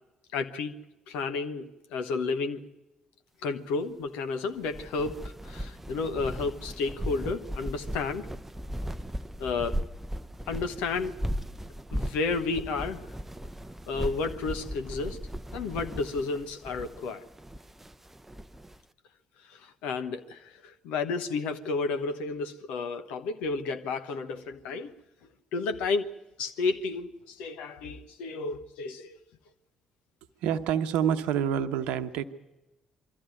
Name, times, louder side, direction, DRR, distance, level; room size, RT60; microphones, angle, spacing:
voice 1, 0.3-0.8 1.1-2.6 3.4-8.3 9.4-9.8 10.5-11.1 11.9-13.1 13.9-15.2 15.5-17.2 19.5-24.9 25.5-26.1 26.4-29.2, left 4 dB, 65° left, 8 dB, 1.2 m, -32 dB
sound 1, 4.6-18.8, equal, 10° right, 0.8 m, -37 dB
voice 2, 30.4-32.2, right 8 dB, 65° right, 10 dB, 1.0 m, -27 dB
24.0 x 14.0 x 9.3 m, 1.0 s
figure-of-eight pair, 45°, 2 cm